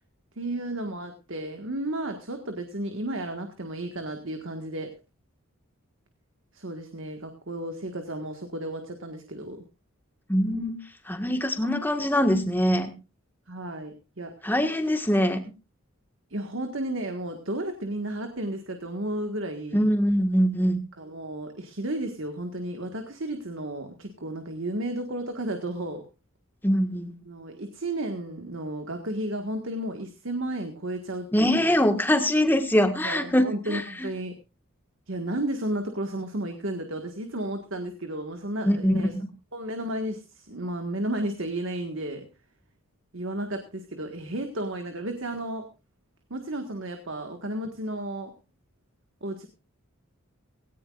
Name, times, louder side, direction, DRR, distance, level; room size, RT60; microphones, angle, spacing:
voice 1, 0.4-4.9 6.5-9.6 11.6-11.8 13.5-14.4 16.3-19.9 21.0-26.1 27.2-31.8 33.0-34.4 35.1-39.1 39.5-42.3 43.1-45.7 46.3-48.3 49.2-49.5, right 1 dB, 65° right, 6 dB, 1.7 m, -33 dB
voice 2, 10.3-10.8 11.1-12.9 14.4-15.4 19.7-20.8 26.6-27.1 31.3-34.1 38.6-39.0, equal, 10° left, 6 dB, 1.6 m, -23 dB
18.0 x 17.5 x 2.5 m, 0.30 s
head